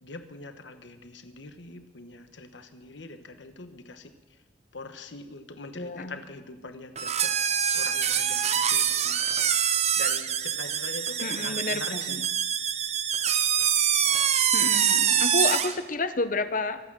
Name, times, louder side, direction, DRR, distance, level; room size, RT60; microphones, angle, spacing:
voice 1, 0.0-4.1 4.7-7.3 7.7-9.2 10.0-12.2, left 3 dB, 75° left, 8 dB, 1.2 m, -43 dB
voice 2, 5.7-6.2 11.2-12.3 14.5-16.8, left 3 dB, 45° left, 11 dB, 1.0 m, -30 dB
sound 1, 7.0-15.8, right 8 dB, 35° right, 0.7 m, -25 dB
24.5 x 8.8 x 6.2 m, 1.1 s
head